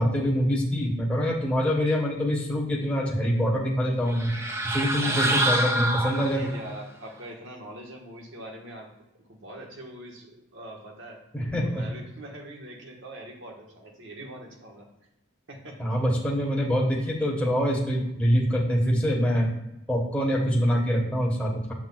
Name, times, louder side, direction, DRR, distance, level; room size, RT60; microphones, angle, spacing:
voice 1, 0.0-4.3 4.6-6.4 11.3-11.8 15.8-19.5 19.9-21.7, equal, 5° left, -4 dB, 1.1 m, -25 dB
sound 1, 4.1-6.7, right 1 dB, 10° right, 0.4 m, -27 dB
voice 2, 5.0-5.4 6.1-8.9 9.3-11.2 11.6-14.9 15.5-16.0, right 1 dB, 60° right, 0 dB, 1.3 m, -42 dB
8.3 x 6.0 x 2.3 m, 0.92 s
head